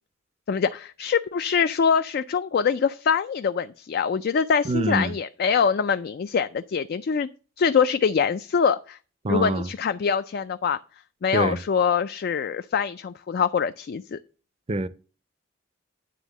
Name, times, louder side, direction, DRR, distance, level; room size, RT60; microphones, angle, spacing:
voice 1, 0.5-7.3 7.6-9.0 9.3-10.8 11.2-14.2, left 6 dB, 50° left, 0.3 m, -24 dB
voice 2, 4.6-5.2 9.2-9.7 11.3-11.6 14.7-14.9, right 2 dB, 30° right, 0.5 m, -25 dB
9.3 x 3.6 x 7.0 m
head